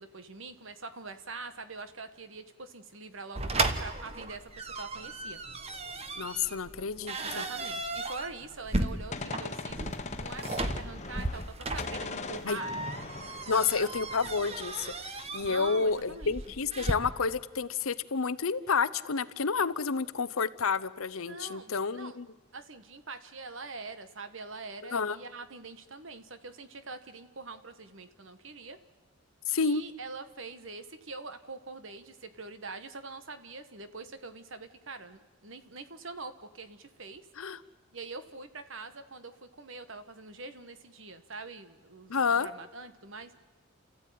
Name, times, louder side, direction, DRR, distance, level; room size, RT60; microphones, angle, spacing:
voice 1, 0.0-5.4 7.2-12.8 15.4-16.4 21.3-22.2 22.5-28.8 29.6-37.3 37.9-43.3, right 3 dB, 60° right, 10 dB, 1.4 m, -44 dB
sound 1, 3.4-16.9, right 2 dB, 30° right, 1.1 m, -35 dB
voice 2, 6.2-7.4 12.4-12.6 13.5-22.3 24.9-25.2 29.5-29.8 37.4-37.6 42.1-42.5, left 5 dB, 70° left, 16 dB, 0.8 m, -30 dB
Gunshot gunfire, 8.7-11.5 11.8-14.5, left 3 dB, 30° left, 1.3 m, -40 dB
29.5 x 14.5 x 9.4 m, 1.3 s
head